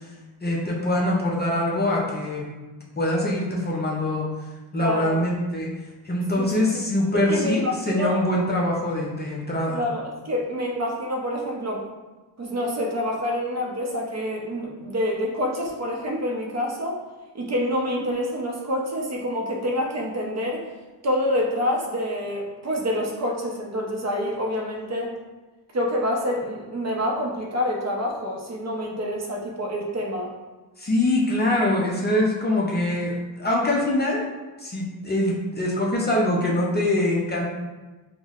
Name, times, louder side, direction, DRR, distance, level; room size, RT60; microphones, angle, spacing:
voice 1, 0.4-2.4 3.0-4.2 4.7-5.7 6.0-9.8 30.8-34.2 34.6-37.5, left 1 dB, 25° left, -3 dB, 0.4 m, -23 dB
voice 2, 4.8-5.2 6.4-6.5 7.3-8.2 9.7-11.8 12.4-17.1 17.3-20.7 21.0-25.1 25.7-30.3, left 1 dB, 40° right, 0 dB, 0.6 m, -27 dB
5.6 x 2.0 x 2.4 m, 1.2 s
wide cardioid pair, 145°, 40 cm